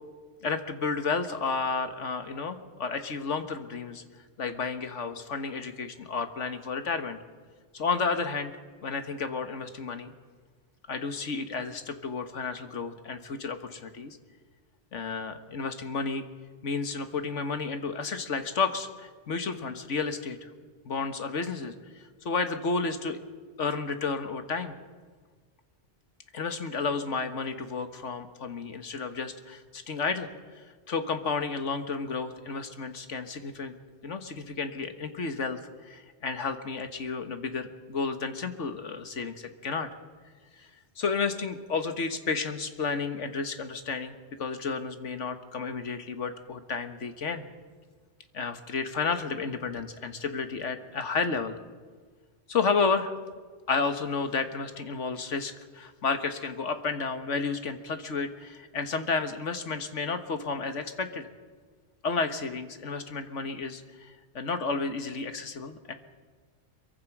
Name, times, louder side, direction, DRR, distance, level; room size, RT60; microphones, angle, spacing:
voice 1, 0.4-4.0 4.4-7.2 7.7-8.5 8.8-10.1 10.9-14.2 14.9-16.2 16.6-20.5 20.9-21.7 22.0-23.2 23.6-24.7 26.3-30.3 30.9-33.7 34.0-39.9 40.6-40.7 41.0-47.4 48.3-51.6 52.5-53.2 53.7-61.3 62.0-65.9, left 4 dB, 85° left, 8 dB, 1.8 m, -31 dB
24.0 x 23.0 x 6.1 m, 1.5 s
omnidirectional pair, 1.2 m